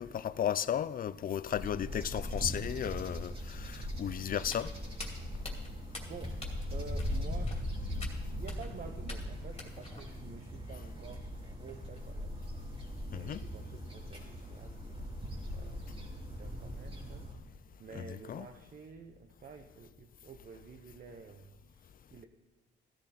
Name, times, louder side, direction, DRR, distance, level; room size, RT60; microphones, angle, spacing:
voice 1, 0.0-4.7 13.1-13.4 17.9-18.5, left 9 dB, 45° left, 0.5 m, -35 dB
sound 1, 1.5-17.3, left 1 dB, 30° right, 2.9 m, -40 dB
Walk footsteps, 4.4-10.0, left 2 dB, 30° left, 2.5 m, -46 dB
voice 2, 6.1-6.4 6.7-12.4 12.7-14.8 15.5-15.8 16.2-17.3 17.8-22.3, right 5 dB, 45° right, 0.9 m, -50 dB
15.5 x 10.5 x 4.3 m
cardioid pair, 90°, 20 cm